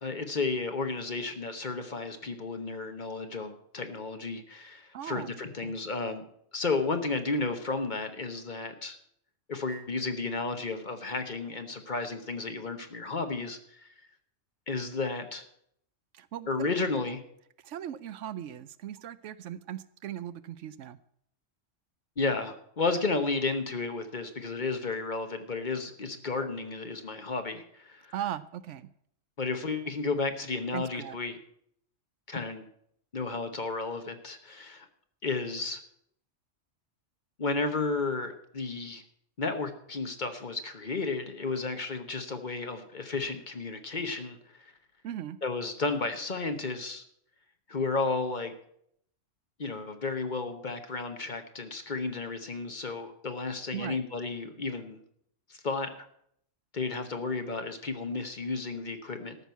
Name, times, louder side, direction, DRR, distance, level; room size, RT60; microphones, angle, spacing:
voice 1, 0.0-6.2 6.5-9.0 9.5-13.9 14.7-15.4 16.5-17.2 22.2-28.1 29.4-31.4 32.3-32.7 33.1-34.9 35.2-35.8 37.4-39.0 39.4-44.7 45.4-47.0 47.7-48.5 49.6-55.0 55.5-56.0 56.7-59.4, left 3 dB, 40° left, 7 dB, 1.1 m, -33 dB
voice 2, 4.9-5.3 5.6-5.8 16.1-16.7 17.0-17.1 17.6-21.0 28.1-28.9 30.7-31.2 45.0-45.4 53.7-54.0, right 10 dB, 75° right, 15 dB, 0.9 m, -38 dB
13.5 x 6.1 x 8.2 m, 0.70 s
omnidirectional pair, 1.3 m